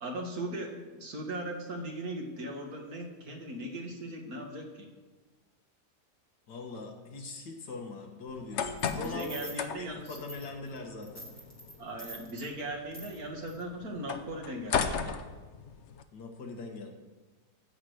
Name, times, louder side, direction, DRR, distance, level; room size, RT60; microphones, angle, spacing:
voice 1, 0.0-4.9 9.0-10.2 11.8-15.2, right 1 dB, 60° right, 2 dB, 2.2 m, -38 dB
voice 2, 6.5-11.3 16.1-16.9, left 3 dB, 85° left, 3 dB, 2.1 m, -41 dB
sound 1, 8.3-16.0, left 6 dB, 55° left, 0.8 m, -37 dB
sound 2, 8.8-9.6 10.0-10.8 11.0-12.5 12.9-13.2 13.5-13.6, right 1 dB, 10° right, 1.5 m, -46 dB
14.5 x 5.1 x 7.9 m, 1.3 s
omnidirectional pair, 1.8 m